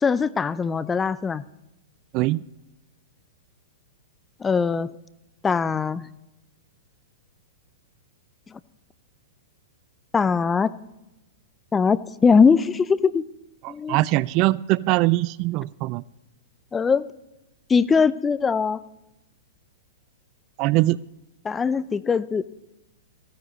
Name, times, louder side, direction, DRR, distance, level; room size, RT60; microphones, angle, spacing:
voice 1, 0.0-1.4 4.4-5.0 5.4-6.1 10.1-10.7 11.7-13.2 13.7-14.0 16.7-17.0 17.7-18.8 21.4-22.4, left 5 dB, 15° left, 16 dB, 0.5 m, -21 dB
voice 2, 13.6-16.0 20.6-21.0, right 19 dB, 40° right, 21 dB, 0.3 m, -22 dB
15.5 x 14.0 x 4.0 m, 0.96 s
hypercardioid pair, 110°, 0 cm